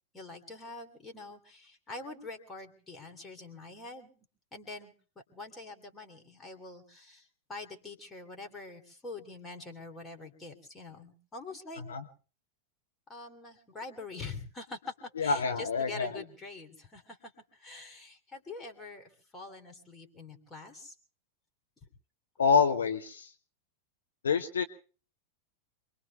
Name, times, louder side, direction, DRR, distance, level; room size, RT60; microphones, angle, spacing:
voice 1, 0.1-4.1 4.5-11.8 13.1-20.9, left 3 dB, 15° left, 3 dB, 3.1 m, -45 dB
voice 2, 15.2-16.1 22.4-23.3 24.2-24.6, left 5 dB, 70° left, 7 dB, 0.9 m, -27 dB
27.5 x 22.0 x 2.4 m, 0.40 s
figure-of-eight pair, 90°, 0 cm